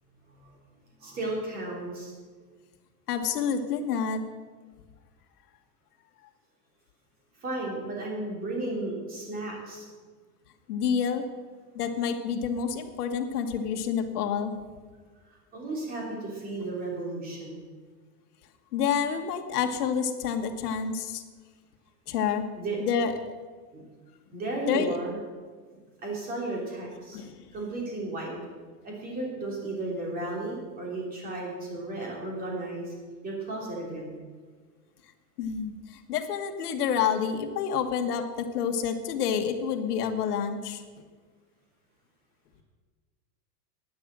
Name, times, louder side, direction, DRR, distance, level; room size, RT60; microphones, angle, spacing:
voice 1, 1.0-2.1 7.4-9.9 15.5-17.6 22.6-22.8 23.7-23.8 24.3-25.2 26.0-27.2 27.5-28.3 28.8-32.9 33.2-34.2, right 2 dB, 20° right, -2 dB, 3.2 m, -34 dB
voice 2, 3.1-4.2 10.7-11.3 11.7-14.5 18.7-21.2 22.1-22.4 22.8-23.1 24.7-25.0 27.1-27.3 35.4-35.7 36.1-40.8, left 7 dB, 70° left, 6 dB, 1.7 m, -28 dB
11.5 x 10.0 x 7.6 m, 1.5 s
supercardioid pair, 175°, 48 cm